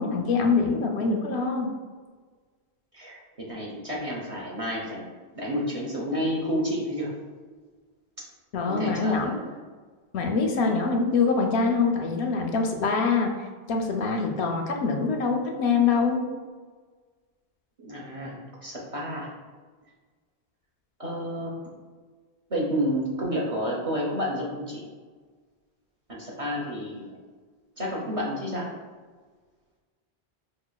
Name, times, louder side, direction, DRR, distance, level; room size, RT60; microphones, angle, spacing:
voice 1, 0.0-1.7 8.5-9.4 10.1-13.3 13.7-16.2, left 4 dB, 85° left, 3 dB, 0.8 m, -24 dB
voice 2, 2.9-5.1 5.3-7.1 8.7-9.5 17.8-19.3 21.0-21.7 22.5-24.8 26.1-27.2 27.8-28.7, equal, 40° right, -4 dB, 0.6 m, -30 dB
4.9 x 2.4 x 2.2 m, 1.4 s
omnidirectional pair, 1.1 m